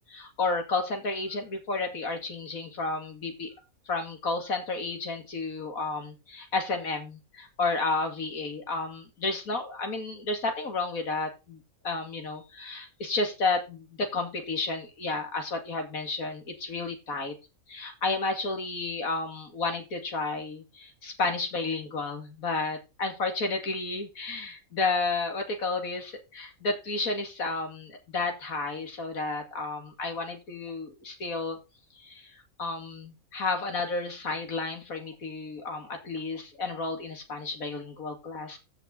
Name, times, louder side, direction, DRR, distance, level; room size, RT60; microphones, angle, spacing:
voice 1, 0.1-3.5 3.9-11.6 11.8-17.3 17.7-31.6 31.9-38.6, left 3 dB, 75° left, 5 dB, 2.7 m, -32 dB
15.0 x 5.9 x 3.9 m, 0.28 s
omnidirectional pair, 1.5 m